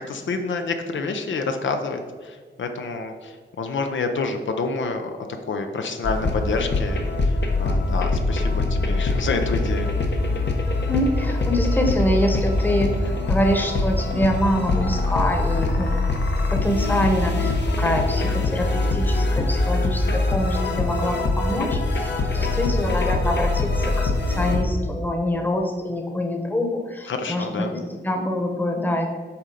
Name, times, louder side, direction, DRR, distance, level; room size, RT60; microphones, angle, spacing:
voice 1, 0.1-5.1 5.5-9.9 27.1-27.7, left 4 dB, 80° left, 5 dB, 0.7 m, -28 dB
sound 1, 6.0-24.6, left 2 dB, 65° left, 1.0 m, -23 dB
voice 2, 10.7-16.0 16.5-29.1, left 1 dB, 10° left, 2 dB, 1.0 m, -25 dB
7.0 x 3.8 x 5.0 m, 1.5 s
wide cardioid pair, 110°, 19 cm